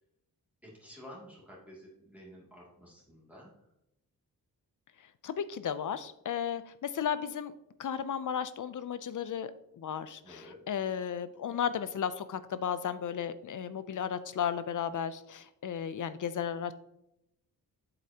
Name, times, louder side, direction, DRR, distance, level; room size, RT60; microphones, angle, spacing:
voice 1, 0.6-3.5 10.2-10.6, equal, 5° right, -6 dB, 2.5 m, -51 dB
voice 2, 5.2-7.5 7.8-9.5 9.8-16.7, left 8 dB, 55° left, 14 dB, 0.5 m, -34 dB
8.0 x 7.8 x 2.9 m, 0.82 s
wide cardioid pair, 105°, 36 cm